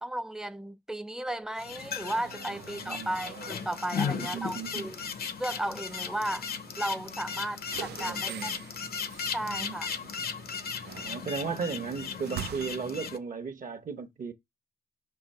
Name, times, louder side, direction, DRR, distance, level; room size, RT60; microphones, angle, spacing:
voice 1, 0.0-5.0 5.4-6.5 6.8-8.6 9.3-9.9, right 1 dB, 5° right, 0.6 m, -35 dB
sound 1, 1.6-13.2, left 6 dB, 65° left, 0.8 m, -36 dB
sound 2, 1.7-12.8, right 11 dB, 80° right, 0.4 m, -47 dB
voice 2, 2.5-3.2 4.1-4.9 8.0-8.6 9.4-9.8 11.0-14.3, right 5 dB, 55° right, 1.0 m, -36 dB
6.6 x 2.8 x 5.4 m
cardioid pair, 95°, 17 cm